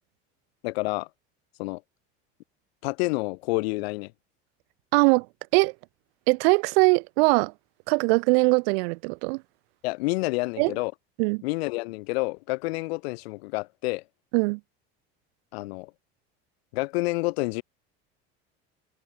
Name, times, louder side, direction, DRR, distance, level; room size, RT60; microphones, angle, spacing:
voice 1, 0.6-1.1 1.6-1.8 2.8-4.1 9.8-10.9 11.4-14.0 15.5-15.9 16.7-17.6, left 23 dB, 85° left, 0.6 m, -28 dB
voice 2, 4.9-5.3 5.5-5.7 6.3-7.5 7.9-9.4 10.6-10.7 11.2-11.4 14.3-14.6, right 30 dB, 80° right, 0.8 m, -21 dB
supercardioid pair, 95°, 30 cm